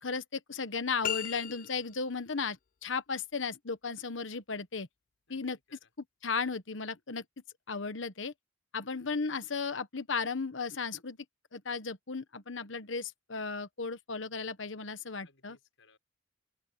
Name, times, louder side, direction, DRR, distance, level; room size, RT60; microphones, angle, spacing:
voice 1, 0.0-4.9 5.3-5.6 6.2-7.2 7.7-8.3 8.7-11.2 11.5-15.6, left 4 dB, 70° left, 1.2 m, -35 dB
sound 1, 1.0-2.1, left 10 dB, 45° left, 0.4 m, -36 dB
voice 2, 5.3-5.9 15.2-16.0, left 4 dB, 90° left, 5.9 m, -64 dB
open air
head